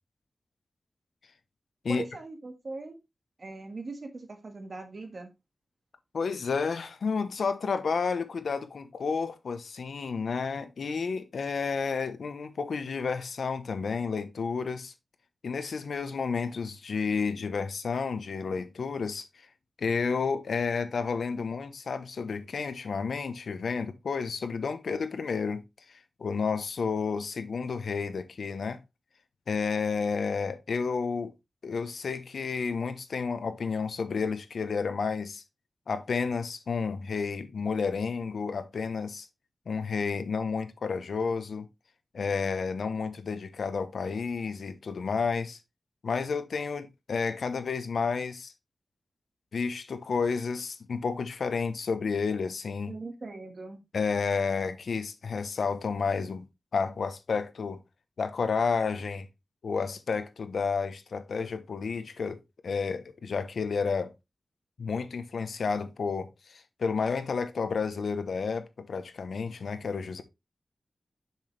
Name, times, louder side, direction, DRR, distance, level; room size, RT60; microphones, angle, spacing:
voice 1, 1.9-3.0 3.4-5.3 52.9-53.8, right 3 dB, 50° right, 1.7 m, -40 dB
voice 2, 6.1-14.9 15.4-19.5 19.8-25.6 25.9-28.8 29.5-31.3 31.6-35.4 35.9-39.3 39.7-41.7 42.1-45.6 46.0-48.5 49.5-52.9 53.9-56.5 56.7-57.8 58.2-59.3 59.6-64.1 64.8-70.2, left 5 dB, 85° left, 1.0 m, -31 dB
7.0 x 6.2 x 3.3 m
wide cardioid pair, 115°, 0 cm